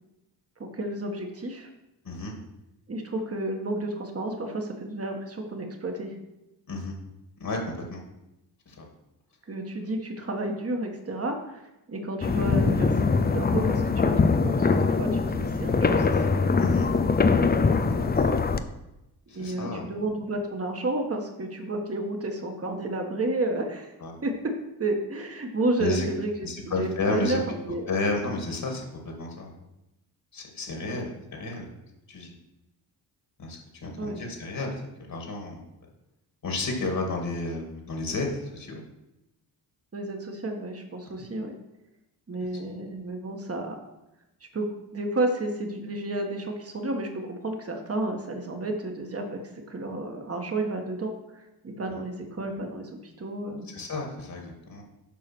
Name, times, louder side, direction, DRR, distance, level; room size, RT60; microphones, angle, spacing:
voice 1, 0.6-1.7 2.9-6.2 9.5-16.3 18.0-18.1 19.3-23.9 24.2-24.5 24.8-26.5 26.8-27.9 30.9-31.0 34.0-34.2 39.9-41.6 42.3-43.8 44.5-44.7 44.9-53.7, right 2 dB, 35° right, 3 dB, 1.7 m, -31 dB
voice 2, 7.4-8.0 8.7-8.9 16.6-16.9 17.8-18.3 19.3-19.9 24.0-24.2 25.8-26.1 26.4-27.4 27.9-29.5 30.3-31.7 32.1-32.3 33.4-35.6 36.4-38.8 53.7-54.8, left 2 dB, 55° left, 1 dB, 2.5 m, -32 dB
sound 1, 12.2-18.6, left 4 dB, 25° left, 0.6 m, -22 dB
7.5 x 4.9 x 6.2 m, 0.93 s
cardioid pair, 75°, 41 cm